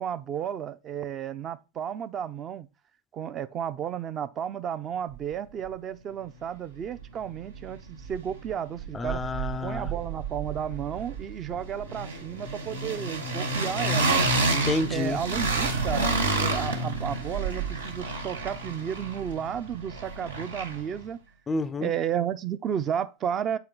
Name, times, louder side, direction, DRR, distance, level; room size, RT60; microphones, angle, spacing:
voice 1, 0.0-2.7 3.1-9.2 9.6-14.1 14.9-21.2 21.8-23.6, right 9 dB, 30° right, 0.7 m, -33 dB
sound 1, 7.0-7.1 7.4-8.5 8.8-21.0, right 3 dB, 70° right, 1.8 m, -30 dB
voice 2, 8.9-9.9 14.5-15.2 21.5-21.9, left 3 dB, 15° left, 0.5 m, -29 dB
8.1 x 4.4 x 4.0 m
figure-of-eight pair, 90°, 0 cm